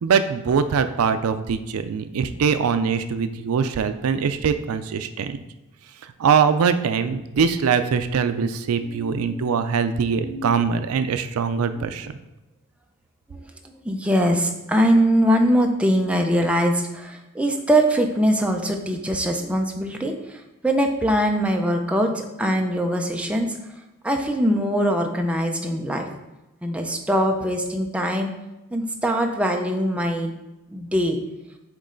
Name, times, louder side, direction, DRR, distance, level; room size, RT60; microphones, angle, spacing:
voice 1, 0.0-5.4 6.2-12.1, right 6 dB, 80° right, 10 dB, 0.4 m, -22 dB
voice 2, 8.8-9.5 10.2-10.6 13.3-13.4 13.8-23.6 24.0-26.1 26.6-28.3 28.7-30.3 30.7-31.2, equal, 5° right, 3 dB, 0.5 m, -22 dB
8.3 x 3.1 x 3.8 m, 0.98 s
head